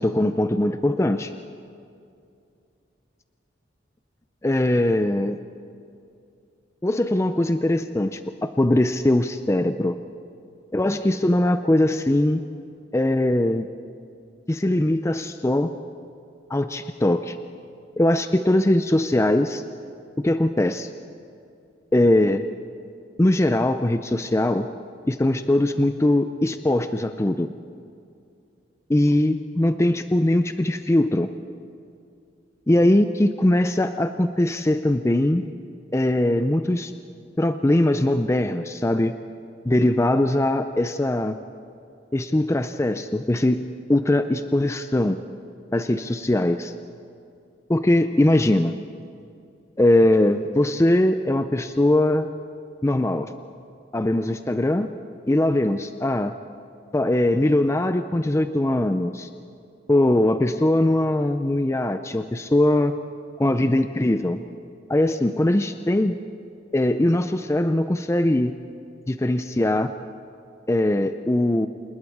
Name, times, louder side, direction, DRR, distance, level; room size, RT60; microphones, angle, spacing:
voice 1, 0.0-1.3 4.4-5.4 6.8-10.0 10.7-12.4 12.9-13.7 14.5-15.7 16.5-17.4 18.0-19.6 20.2-20.9 21.9-22.5 23.2-24.7 25.1-27.5 28.9-31.3 32.7-35.4 35.9-36.9 37.4-39.1 39.6-41.4 42.1-45.2 45.7-46.7 47.7-48.7 49.8-52.3 52.8-53.3 53.9-54.9 55.3-56.3 56.9-59.3 59.9-62.9 63.4-64.4 64.9-66.2 66.7-68.5 69.1-69.9 70.7-71.7, left 1 dB, 15° left, 9 dB, 0.5 m, -21 dB
27.0 x 20.5 x 4.8 m, 2.5 s
head